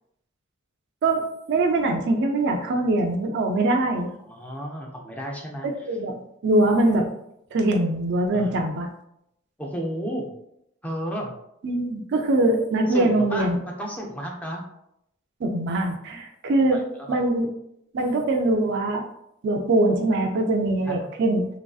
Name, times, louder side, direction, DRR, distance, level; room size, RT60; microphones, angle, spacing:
voice 1, 1.0-4.1 5.6-6.2 6.4-7.1 7.5-8.9 11.6-13.6 15.4-16.8 17.1-17.5 17.9-19.1 19.4-21.5, right 2 dB, 55° right, 3 dB, 0.4 m, -22 dB
voice 2, 4.3-5.7 8.3-8.7 9.6-10.3 10.8-11.3 12.9-14.6 16.7-17.2 20.9-21.1, equal, 5° left, -1 dB, 0.5 m, -32 dB
3.0 x 2.5 x 2.3 m, 0.77 s
head